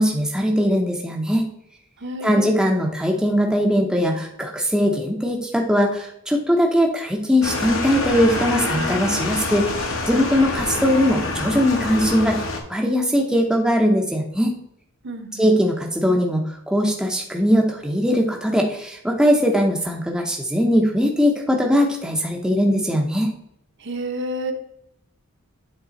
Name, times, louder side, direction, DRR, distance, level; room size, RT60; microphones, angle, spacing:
voice 1, 0.0-1.5 2.2-12.4 12.7-14.5 15.3-23.3, equal, 5° right, 0 dB, 0.6 m, -20 dB
voice 2, 2.0-2.6 15.0-15.5 23.8-24.5, right 1 dB, 55° right, 5 dB, 0.8 m, -30 dB
sound 1, 7.4-12.6, left 3 dB, 65° left, 1.1 m, -26 dB
8.2 x 3.5 x 4.0 m, 0.75 s
head